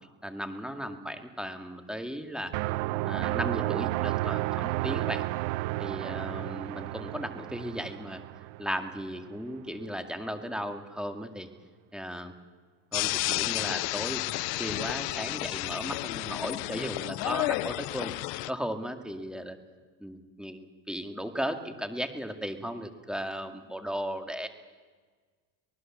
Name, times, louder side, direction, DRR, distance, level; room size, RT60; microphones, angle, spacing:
voice 1, 0.2-2.5 3.1-5.3 5.8-8.2 8.6-11.5 11.9-12.3 12.9-18.1 18.5-19.6 20.0-24.5, equal, ahead, 7 dB, 2.1 m, -36 dB
sound 1, 2.5-9.3, right 18 dB, 70° right, 0.7 m, -32 dB
sound 2, 12.9-18.5, left 22 dB, 80° left, 0.7 m, -31 dB
24.5 x 19.5 x 7.4 m, 1.5 s
supercardioid pair, 120°, 48 cm